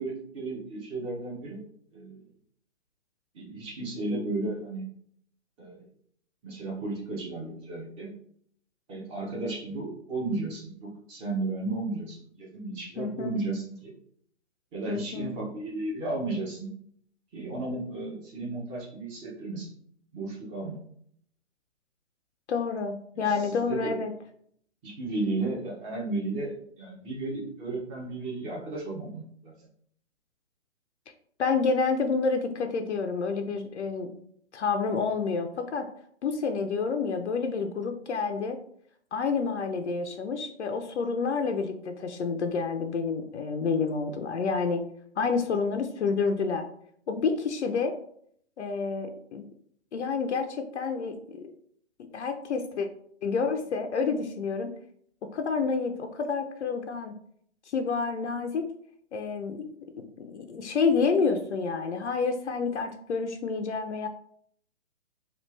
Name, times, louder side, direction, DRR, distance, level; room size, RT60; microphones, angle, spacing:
voice 1, 0.0-1.6 1.9-2.2 3.3-4.8 5.6-5.9 6.4-8.1 8.9-13.9 14.7-16.7 17.3-19.7 20.1-20.8 23.1-24.0 24.8-29.5, right 2 dB, 15° right, -3 dB, 0.7 m, -34 dB
voice 2, 13.0-13.3 14.9-15.3 22.5-24.1 31.4-34.2 34.5-35.9 36.2-38.6 39.1-44.8 45.2-46.7 47.1-47.9 48.6-49.4 49.9-51.5 52.1-52.9 53.2-54.7 55.3-57.2 57.7-58.7 59.1-59.7 60.0-64.1, left 5 dB, 70° left, 5 dB, 0.5 m, -29 dB
3.2 x 2.4 x 3.1 m, 0.65 s
figure-of-eight pair, 135°, 36 cm